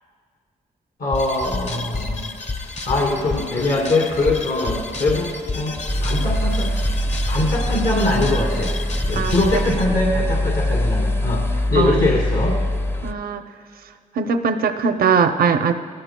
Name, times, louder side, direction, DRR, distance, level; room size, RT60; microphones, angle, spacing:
voice 1, 1.0-2.3 2.6-6.7 7.3-8.7 9.1-11.4 11.7-12.6, left 2 dB, 80° left, -3 dB, 2.4 m, -22 dB
sound 1, 1.1-9.8, left 3 dB, 45° left, 1.0 m, -30 dB
sound 2, 5.9-13.1, equal, 15° left, 0.5 m, -23 dB
voice 2, 9.1-9.8 11.7-12.1 13.0-13.4 14.2-15.7, right 6 dB, 75° right, 8 dB, 0.6 m, -20 dB
19.5 x 14.5 x 2.2 m, 2.1 s
cardioid pair, 60°, 15 cm